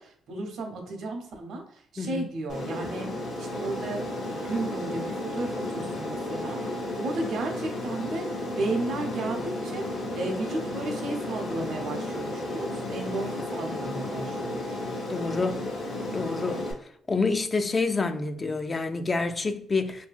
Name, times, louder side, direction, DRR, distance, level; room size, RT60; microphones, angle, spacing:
voice 1, 0.0-1.6 1.9-3.1 3.4-8.3 8.5-14.8, right 2 dB, 70° right, 0.7 m, -34 dB
voice 2, 2.0-2.3 15.1-15.7 16.1-16.7 17.1-20.1, left 3 dB, 30° left, 0.3 m, -28 dB
Aircraft, 2.5-16.7, left 1 dB, 65° left, 0.9 m, -33 dB
2.7 x 2.7 x 2.4 m
cardioid pair, 90°, 0 cm